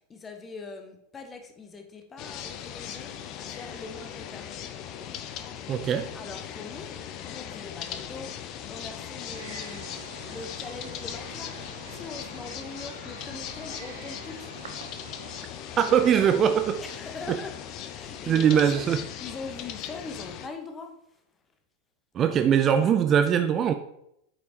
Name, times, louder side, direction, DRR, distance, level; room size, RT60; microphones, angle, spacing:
voice 1, 0.1-4.5 6.1-6.9 7.2-10.0 10.3-11.5 11.9-14.5 15.8-15.9 16.1-17.5 17.8-18.8 19.2-20.9 22.8-23.0, left 4 dB, 20° left, 1.0 m, -42 dB
sound 1, 2.2-20.5, left 9 dB, 40° left, 0.6 m, -39 dB
voice 2, 5.7-6.1 15.8-16.7 17.3-17.4 18.3-19.0 22.1-23.7, right 8 dB, 30° right, 0.4 m, -21 dB
Wild animals, 9.3-15.4, right 5 dB, 65° right, 0.9 m, -46 dB
8.3 x 5.3 x 2.9 m
figure-of-eight pair, 90°, 0 cm